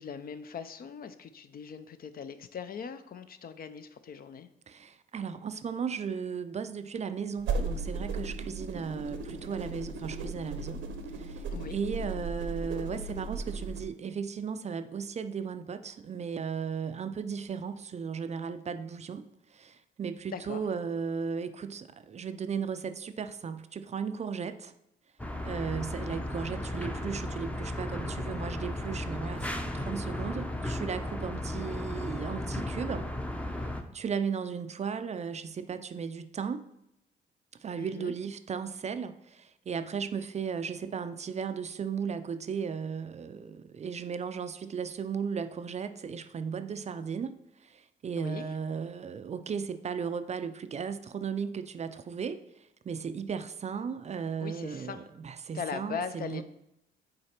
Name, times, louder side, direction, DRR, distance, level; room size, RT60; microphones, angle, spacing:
voice 1, 0.0-4.5 11.5-11.8 20.3-20.6 26.0-26.2 37.8-38.1 48.2-48.4 54.4-55.0 55.5-56.4, left 6 dB, 50° left, 0.5 m, -40 dB
voice 2, 4.7-10.8 11.1-11.4 11.7-24.7 25.4-33.1 33.6-36.6 37.6-47.3 47.6-56.4, right 6 dB, 35° right, 0.4 m, -36 dB
sound 1, 7.4-13.9, right 3 dB, 75° right, 0.7 m, -36 dB
sound 2, 25.2-33.8, left 1 dB, 5° left, 0.6 m, -35 dB
6.4 x 4.0 x 4.4 m
cardioid pair, 90°, 20 cm